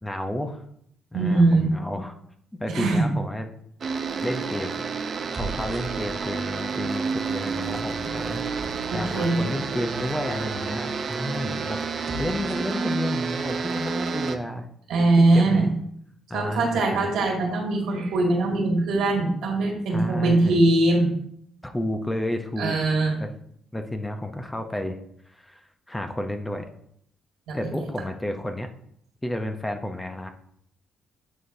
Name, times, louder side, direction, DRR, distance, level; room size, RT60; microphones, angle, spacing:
voice 1, 0.0-0.6 1.1-2.1 2.6-3.5 4.2-4.8 5.4-8.4 8.9-14.7 15.2-15.7 16.3-17.1 19.9-20.6 21.6-22.8 23.2-23.3 23.7-25.0 25.3-26.7 27.5-28.7 29.2-30.3, left 1 dB, 10° left, 6 dB, 0.6 m, -31 dB
voice 2, 1.1-1.7 2.7-3.1 8.9-9.4 14.9-15.7 16.3-21.1 22.6-23.2 27.5-27.9, right 2 dB, 80° right, -1 dB, 2.0 m, -21 dB
sound 1, 3.8-14.4, right 5 dB, 50° right, 0.6 m, -30 dB
sound 2, 5.1-6.5 7.2-9.5 11.9-12.8, right 3 dB, 30° right, 1.1 m, -40 dB
9.2 x 3.9 x 2.7 m, 0.69 s
cardioid pair, 90°, 0 cm